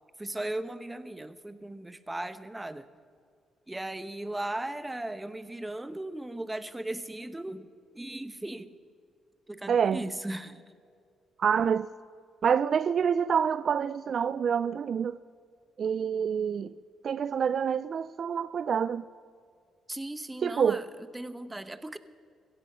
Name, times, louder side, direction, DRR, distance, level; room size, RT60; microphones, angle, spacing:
voice 1, 0.2-2.9 3.7-8.7 9.5-10.6 19.9-22.0, right 1 dB, 10° right, 0.9 m, -37 dB
voice 2, 9.7-10.0 11.4-11.9 12.4-15.2 15.8-16.7 17.0-19.1 20.4-20.8, right 7 dB, 55° right, 0.3 m, -27 dB
16.5 x 14.5 x 5.6 m
cardioid pair, 90°, 0 cm